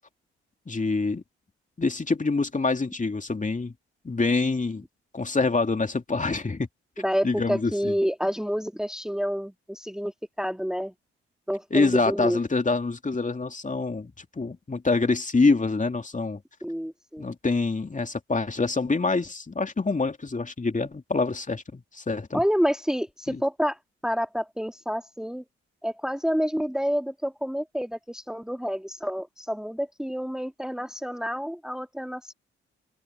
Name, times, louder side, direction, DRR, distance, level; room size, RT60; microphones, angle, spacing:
voice 1, 0.7-1.2 1.8-3.7 4.0-4.8 5.1-6.7 7.2-7.9 11.7-16.4 17.2-22.4 23.3-23.4, left 3 dB, 25° left, 2.8 m, -26 dB
voice 2, 7.0-10.1 10.4-10.9 11.5-12.4 16.6-17.3 22.3-25.4 25.8-32.3, equal, ahead, 2.1 m, -28 dB
open air
hypercardioid pair, 40°, 30 cm